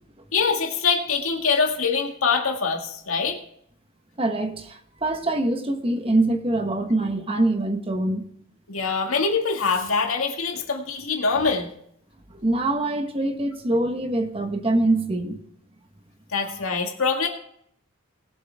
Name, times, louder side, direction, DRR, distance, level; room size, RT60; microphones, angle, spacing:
voice 1, 0.3-3.4 8.7-11.7 16.3-17.3, left 5 dB, 80° left, 2.0 m, -24 dB
voice 2, 4.2-8.2 12.3-15.4, right 2 dB, 25° right, 1.2 m, -24 dB
20.5 x 7.8 x 3.5 m
head